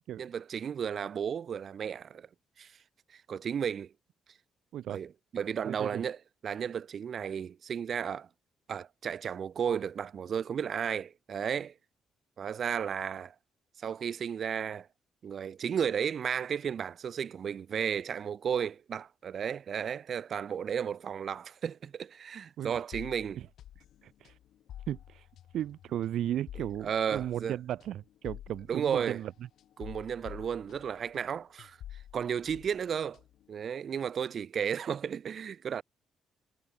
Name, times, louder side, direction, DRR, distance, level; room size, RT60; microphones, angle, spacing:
voice 1, 0.2-2.3 2.6-2.7 3.1-3.9 4.9-6.2 6.4-8.3 8.7-11.7 12.4-13.3 13.8-14.9 15.2-23.4 26.8-27.6 28.7-29.2 29.8-31.8 32.1-33.2 33.5-35.8, right 7 dB, 55° right, 2.8 m, -33 dB
voice 2, 5.6-6.0 22.6-22.8 23.4-23.5 23.8-24.4 24.9-25.3 25.5-29.3, right 11 dB, 75° right, 1.2 m, -35 dB
sound 1, 22.9-31.3 31.6-33.5, left 11 dB, 75° left, 6.4 m, -49 dB
cardioid pair, 90°, 0 cm